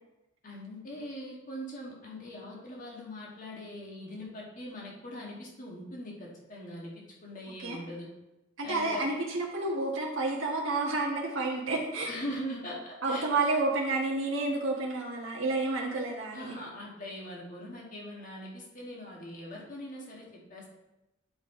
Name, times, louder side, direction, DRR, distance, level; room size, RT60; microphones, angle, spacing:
voice 1, 0.4-8.1 8.6-9.0 12.0-13.2 16.3-20.7, equal, 40° left, -3 dB, 1.5 m, -41 dB
voice 2, 8.6-12.1 13.0-16.6, right 2 dB, 70° right, -3 dB, 1.3 m, -30 dB
9.6 x 4.2 x 4.3 m, 0.97 s
head